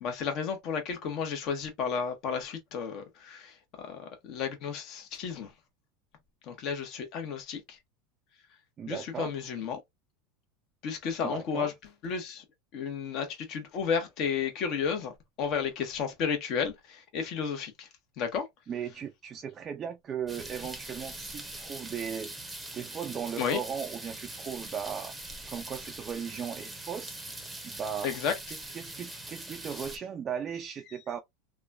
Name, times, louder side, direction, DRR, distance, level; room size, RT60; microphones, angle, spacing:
voice 1, 0.0-5.5 6.4-7.8 8.9-9.8 10.8-11.7 12.0-12.4 12.7-17.9 18.2-18.5 23.4-23.6 28.0-28.3, left 6 dB, 50° left, 1.0 m, -32 dB
voice 2, 8.8-9.3 11.2-11.7 18.7-22.3 22.7-25.1 25.5-27.2 27.6-28.1 28.5-31.2, right 7 dB, 30° right, 0.4 m, -37 dB
sound 1, 20.3-30.0, right 2 dB, 5° right, 0.8 m, -42 dB
2.9 x 2.2 x 2.4 m
supercardioid pair, 120°, 0 cm